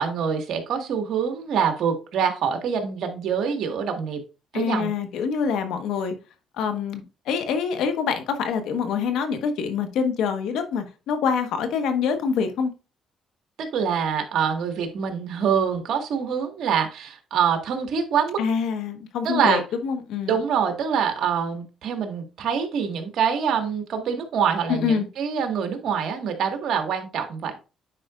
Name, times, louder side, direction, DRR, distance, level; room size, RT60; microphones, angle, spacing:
voice 1, 0.0-4.2 4.5-4.9 13.6-18.4 19.2-19.6 20.3-27.6, right 7 dB, 70° right, 5 dB, 1.7 m, -25 dB
voice 2, 4.5-6.1 6.6-12.7 18.4-20.4 24.7-25.0, left 6 dB, 85° left, 7 dB, 1.3 m, -25 dB
9.8 x 5.0 x 2.5 m, 0.31 s
cardioid pair, 95°, 0 cm